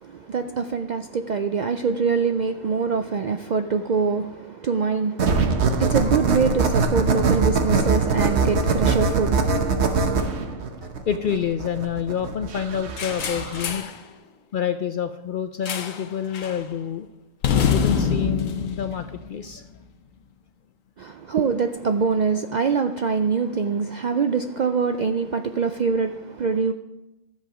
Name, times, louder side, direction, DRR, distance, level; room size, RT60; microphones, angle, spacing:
voice 1, 0.0-10.5 21.0-26.7, right 5 dB, 90° right, 0.4 m, -24 dB
sound 1, 5.2-13.7, right 4 dB, 60° right, 1.2 m, -22 dB
voice 2, 9.8-10.3 10.8-13.8 14.5-17.1 17.7-19.6, left 8 dB, 65° left, 0.5 m, -28 dB
sound 2, 13.0-14.0 15.7-16.1 16.3-16.6 17.4-19.8, left 7 dB, 80° left, 1.2 m, -25 dB
12.5 x 7.4 x 5.0 m
omnidirectional pair, 1.3 m